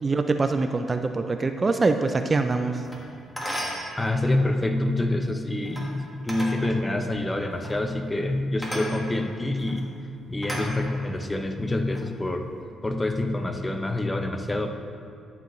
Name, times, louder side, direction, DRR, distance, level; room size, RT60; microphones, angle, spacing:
voice 1, 0.0-2.8, right 3 dB, 30° right, 7 dB, 0.4 m, -24 dB
sound 1, 2.8-3.0 3.4-3.9 5.6-5.9 6.3-6.6 7.5-7.7 8.6-8.9 9.6-9.8 10.4-11.2 11.7-12.0, equal, ahead, 1.7 m, -34 dB
voice 2, 4.0-9.9 10.3-12.5 12.8-14.7, left 1 dB, 15° left, 6 dB, 0.7 m, -26 dB
12.0 x 6.9 x 3.1 m, 2.4 s
cardioid pair, 90°, 0 cm